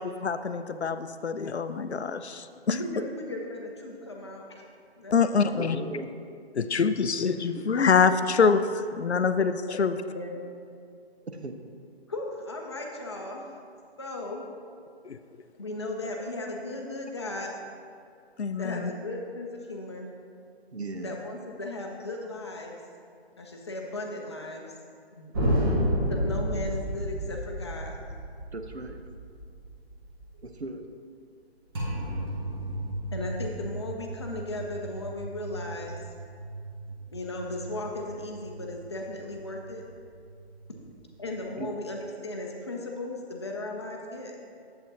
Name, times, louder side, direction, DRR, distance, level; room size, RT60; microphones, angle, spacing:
voice 1, 0.0-2.8 5.1-5.8 6.6-10.0 15.1-15.2 18.4-18.9, left 5 dB, 90° left, 11 dB, 0.5 m, -25 dB
voice 2, 2.7-4.6 5.0-5.6 9.7-9.9 10.1-10.4 12.1-13.5 14.0-14.5 15.5-17.5 18.6-20.1 21.0-22.8 23.4-24.8 25.1-25.3 26.1-28.0 33.1-36.0 37.1-39.8 41.2-44.4, left 2 dB, 25° left, 0 dB, 0.6 m, -36 dB
voice 3, 5.6-6.1 7.6-7.7 8.1-8.2 11.3-11.6 20.7-21.2 25.4-25.9 28.5-29.0 30.4-30.9 41.6-41.7, right 2 dB, 85° right, 6 dB, 0.8 m, -37 dB
sound 1, 25.3-30.4 31.7-41.7, equal, 20° right, 1.0 m, -33 dB
7.7 x 7.6 x 2.8 m, 2.3 s
figure-of-eight pair, 145°, 32 cm